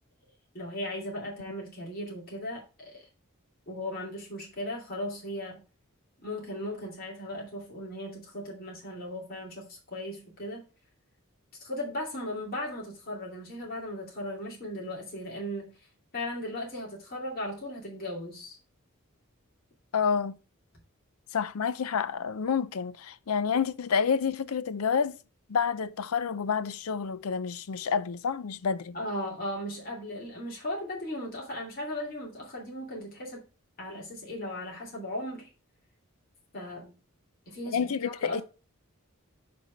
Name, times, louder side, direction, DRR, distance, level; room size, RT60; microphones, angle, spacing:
voice 1, 0.5-3.1 3.7-5.6 6.2-10.7 11.6-18.6 28.9-33.4 33.8-35.5 36.5-36.9 37.5-38.4, left 1 dB, 40° left, 2.5 m, -37 dB
voice 2, 19.9-20.4 21.3-25.2 25.5-29.0 37.7-38.4, left 6 dB, 85° left, 0.5 m, -29 dB
7.4 x 4.3 x 5.2 m
head